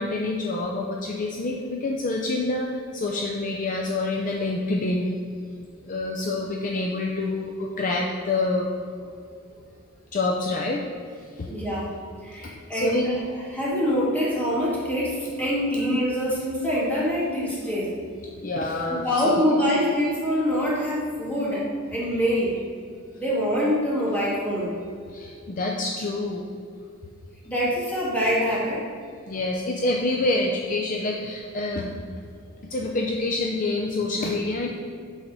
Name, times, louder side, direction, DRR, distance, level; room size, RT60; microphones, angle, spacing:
voice 1, 0.0-5.2 5.9-8.7 10.1-10.8 11.1-11.5 12.3-13.2 18.4-19.4 25.1-26.5 29.3-32.3 32.7-34.7, left 2 dB, 40° left, 0 dB, 0.5 m, -27 dB
voice 2, 11.5-11.9 12.2-13.2 13.5-18.0 19.0-22.6 23.2-24.7 27.5-28.8, equal, 10° left, -7 dB, 1.9 m, -25 dB
7.9 x 4.1 x 6.0 m, 2.3 s
head